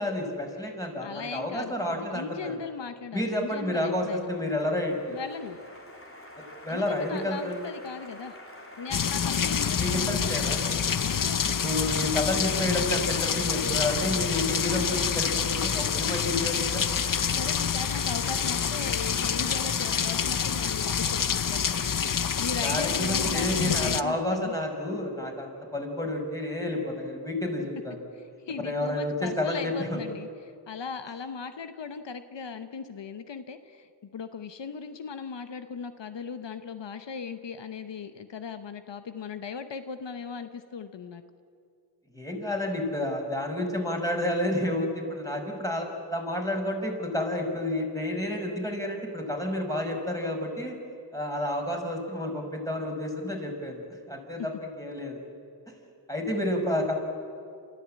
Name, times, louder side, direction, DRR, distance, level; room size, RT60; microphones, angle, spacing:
voice 1, 0.0-2.5 3.1-5.2 6.6-7.6 9.8-10.6 11.2-16.8 20.6-20.7 22.6-28.0 28.6-30.0 42.1-50.8 51.1-55.2 56.1-56.9, left 1 dB, 10° left, 1 dB, 5.3 m, -30 dB
voice 2, 1.0-4.3 5.1-5.6 6.7-8.3 8.8-10.3 11.1-11.6 17.3-24.5 28.5-41.2, left 6 dB, 85° left, 10 dB, 0.9 m, -38 dB
Applause, 3.7-22.5, left 1 dB, 30° left, 3.5 m, -48 dB
sound 1, 8.9-24.0, left 7 dB, 50° left, 0.7 m, -27 dB
28.0 x 13.5 x 8.6 m, 2.4 s
cardioid pair, 45°, 42 cm